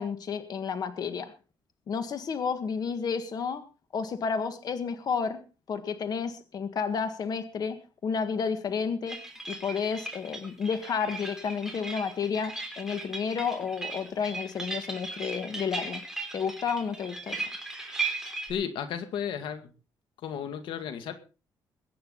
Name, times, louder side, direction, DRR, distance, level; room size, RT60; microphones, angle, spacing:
voice 1, 0.0-1.3 1.9-3.6 3.9-5.4 5.7-7.8 8.0-9.2 9.5-16.0 16.3-17.4, left 6 dB, 50° left, 9 dB, 1.7 m, -31 dB
sound 1, 9.1-18.5, right 3 dB, 5° right, 3.7 m, -37 dB
voice 2, 18.5-19.7 20.2-21.1, left 8 dB, 85° left, 8 dB, 2.1 m, -33 dB
22.0 x 9.5 x 4.0 m, 0.33 s
cardioid pair, 110°, 8 cm